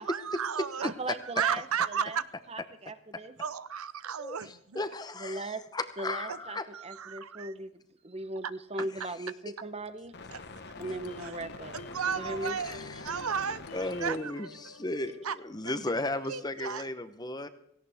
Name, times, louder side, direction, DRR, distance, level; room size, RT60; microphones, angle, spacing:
voice 1, 0.0-0.9 1.2-2.2 3.4-4.8 6.3-6.4 6.7-7.5 10.3-10.4 11.2-11.4 11.7-13.6 14.0-14.5 15.2-15.4 16.3-16.9, right 7 dB, 85° right, 0.7 m, -34 dB
voice 2, 0.8-2.2 2.5-3.3 5.2-5.6 6.0-7.7 8.0-10.1 10.8-11.8 12.1-12.6, right 2 dB, 30° right, 0.9 m, -38 dB
voice 3, 4.2-6.7 9.2-9.5 12.6-13.0 13.7-17.5, left 2 dB, 20° left, 0.8 m, -35 dB
sound 1, 9.8-14.1, left 3 dB, 50° left, 1.2 m, -46 dB
sound 2, 10.7-16.2, left 3 dB, 85° left, 1.1 m, -48 dB
17.5 x 16.5 x 3.5 m
head